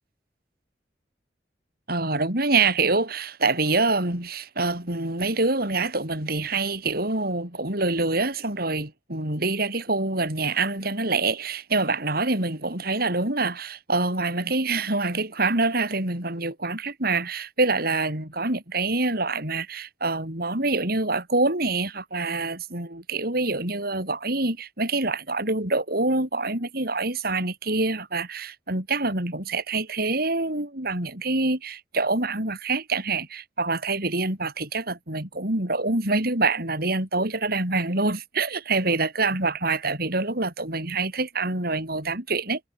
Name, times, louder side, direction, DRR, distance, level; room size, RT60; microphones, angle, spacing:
voice 1, 1.9-42.6, right 3 dB, 60° right, 6.5 m, -26 dB
head